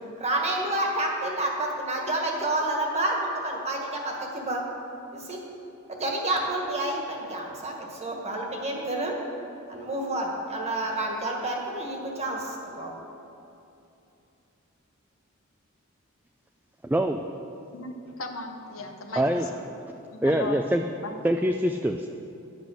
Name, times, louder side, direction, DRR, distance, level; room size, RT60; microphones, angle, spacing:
voice 1, 0.2-4.6 5.1-5.4 5.9-9.2 9.7-12.9 19.3-19.4, right 1 dB, 30° right, 0 dB, 1.7 m, -29 dB
voice 2, 16.8-17.2 19.2-19.5 20.2-20.8 21.2-22.1, right 1 dB, 10° right, 4 dB, 0.3 m, -24 dB
voice 3, 17.7-19.6 20.1-20.6 21.0-21.2, left 3 dB, 70° left, 4 dB, 1.1 m, -36 dB
11.5 x 8.2 x 6.3 m, 2.8 s
head